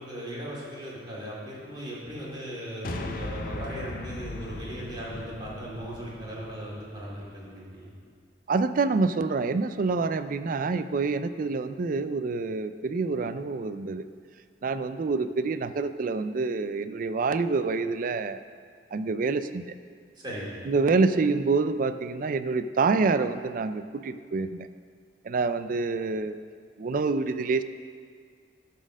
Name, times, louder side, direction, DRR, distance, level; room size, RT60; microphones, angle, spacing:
voice 1, 0.0-7.9 20.1-20.6, equal, 25° right, -6 dB, 2.5 m, -38 dB
sound 1, 2.8-7.3, left 2 dB, 55° left, 0.6 m, -38 dB
voice 2, 8.5-14.0 14.6-18.4 18.9-19.7 20.7-24.7 25.2-26.4 26.8-27.6, right 4 dB, 50° right, 11 dB, 0.4 m, -27 dB
12.5 x 4.3 x 6.2 m, 2.1 s
head